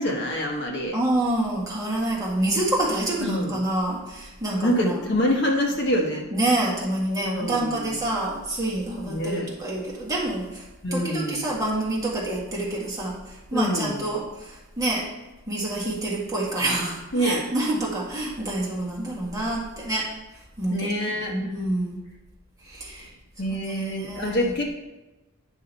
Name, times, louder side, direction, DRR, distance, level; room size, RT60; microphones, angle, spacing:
voice 1, 0.0-0.9 3.2-3.6 4.6-6.3 7.3-7.8 9.1-9.5 10.8-11.4 13.5-14.0 17.1-17.4 20.7-21.3 23.4-24.7, equal, 50° left, 1 dB, 1.2 m, -26 dB
voice 2, 0.9-5.0 6.3-10.6 10.9-15.1 15.5-20.1 20.6-20.9 21.3-22.0 22.6-23.1 23.5-24.4, right 1 dB, 15° right, -4 dB, 1.7 m, -27 dB
9.5 x 5.4 x 4.0 m, 1.1 s
head